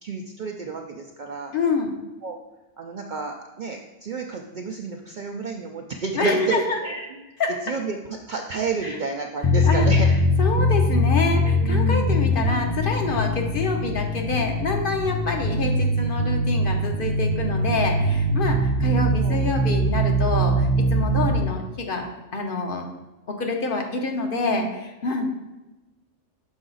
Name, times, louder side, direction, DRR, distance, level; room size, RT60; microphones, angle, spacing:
voice 1, 0.0-1.5 2.2-2.4 2.8-7.1 7.7-8.0 8.3-10.1 11.4-12.3 19.2-19.5 24.3-24.7 25.2-25.3, right 4 dB, 60° right, 2 dB, 0.5 m, -31 dB
voice 2, 1.5-1.9 6.2-6.8 7.4-7.6 8.8-9.0 9.6-9.9 10.4-22.1 22.3-22.8 23.4-25.3, left 3 dB, 55° left, 3 dB, 0.9 m, -26 dB
sound 1, 9.4-21.4, equal, 30° left, 0.4 m, -22 dB
6.2 x 4.9 x 3.8 m, 1.1 s
omnidirectional pair, 1.2 m